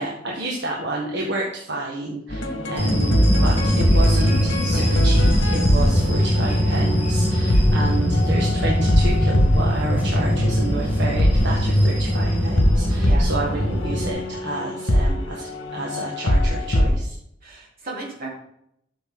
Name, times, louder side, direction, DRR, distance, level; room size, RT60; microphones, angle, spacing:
voice 1, 0.0-17.1, right 2 dB, 65° right, -3 dB, 1.7 m, -30 dB
sound 1, 2.3-16.9, equal, 70° left, 1.6 m, -23 dB
sound 2, 2.8-14.1, equal, 10° right, 3.5 m, -21 dB
voice 2, 12.9-13.3 17.4-18.3, right 2 dB, 50° right, -4 dB, 3.6 m, -34 dB
12.5 x 6.9 x 3.8 m, 0.76 s
head